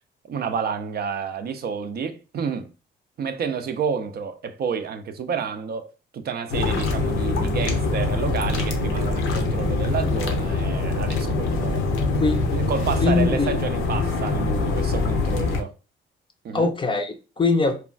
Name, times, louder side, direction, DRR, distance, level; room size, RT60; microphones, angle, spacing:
voice 1, 0.2-2.7 3.2-11.9 12.5-15.7 16.4-16.7, right 6 dB, 55° right, 0.4 m, -30 dB
Ambient Coimbatore Lake, 6.5-15.6, left 3 dB, 90° left, 0.6 m, -24 dB
voice 2, 13.0-13.6 16.5-17.9, left 4 dB, 25° left, 0.4 m, -22 dB
3.0 x 2.3 x 2.4 m
cardioid pair, 90°, 20 cm